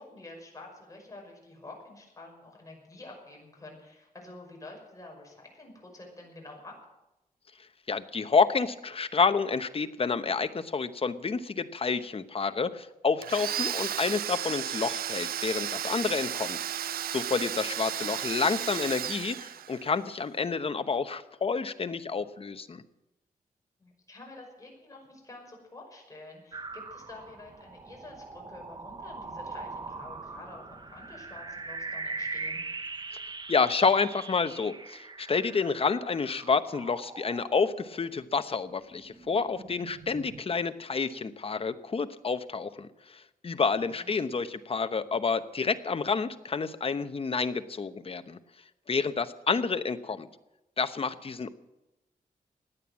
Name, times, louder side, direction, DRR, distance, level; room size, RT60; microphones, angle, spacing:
voice 1, 0.0-6.8 18.0-18.1 23.8-32.6 43.7-44.2, left 2 dB, 20° left, 0 dB, 5.7 m, -48 dB
voice 2, 7.9-16.6 17.1-22.8 33.5-48.4 48.9-50.3 50.8-51.5, left 5 dB, 40° left, 10 dB, 1.0 m, -29 dB
Domestic sounds home sounds, 13.2-20.0, right 10 dB, 85° right, 0.4 m, -34 dB
sound 1, 26.5-38.4 38.8-40.4, right 3 dB, 30° right, 0.9 m, -41 dB
16.5 x 10.5 x 7.4 m, 0.94 s
wide cardioid pair, 115°, 15 cm